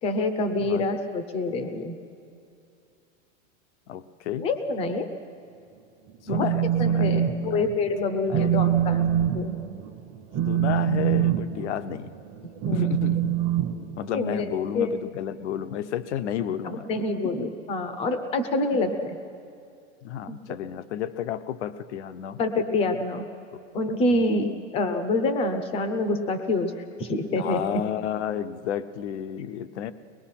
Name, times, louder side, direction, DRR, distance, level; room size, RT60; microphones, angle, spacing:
voice 1, 0.0-2.0 4.4-5.1 6.3-6.5 6.8-9.1 9.3-9.6 12.7-12.9 14.1-14.5 14.7-14.9 16.6-19.2 20.3-20.4 22.4-23.3 23.7-24.5 24.7-26.7 27.0-27.8, left 2 dB, 15° left, 9 dB, 0.7 m, -26 dB
voice 2, 3.9-4.5 6.2-7.7 8.3-8.5 10.5-12.1 12.7-13.4 14.0-16.9 17.2-17.3 20.0-22.4 24.1-24.6 27.4-29.9, left 10 dB, 60° left, 12 dB, 0.9 m, -32 dB
Telephone, 6.1-7.3 7.6-7.9 8.3-14.4, right 11 dB, 20° right, 1.0 m, -24 dB
23.5 x 20.5 x 5.8 m, 2.5 s
supercardioid pair, 175°, 38 cm